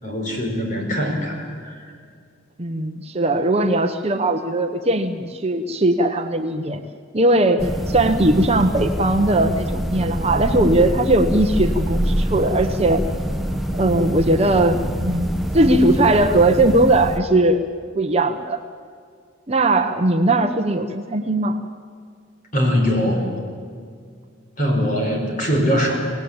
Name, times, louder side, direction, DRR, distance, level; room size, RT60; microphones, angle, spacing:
voice 1, 0.0-1.8 22.5-23.3 24.6-25.9, equal, 40° left, 2 dB, 4.7 m, -22 dB
voice 2, 2.6-6.8 7.1-13.0 13.7-17.7 17.9-18.6 19.5-21.6, right 2 dB, 30° right, 6 dB, 0.9 m, -19 dB
sound 1, 7.6-17.2, equal, ahead, 1.0 m, -25 dB
24.5 x 18.0 x 8.9 m, 2.1 s
head